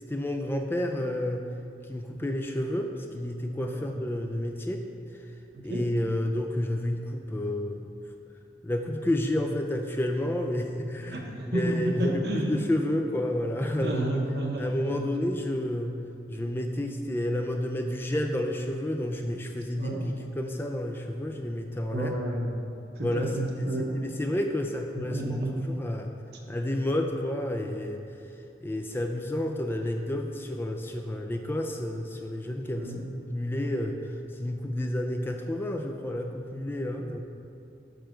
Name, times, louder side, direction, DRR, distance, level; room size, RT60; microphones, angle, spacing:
voice 1, 0.1-1.5 1.9-5.1 5.6-7.9 8.6-14.2 14.6-16.0 16.3-20.0 20.4-22.1 23.0-26.1 26.5-28.0 28.6-32.9 33.3-37.2, left 1 dB, 15° left, 3 dB, 0.3 m, -30 dB
voice 2, 11.1-12.6 13.8-15.1 19.8-20.0 21.9-22.5 23.0-23.9 25.0-25.6 32.7-33.0, right 1 dB, 70° right, 0 dB, 1.0 m, -31 dB
6.7 x 6.2 x 4.5 m, 2.7 s
head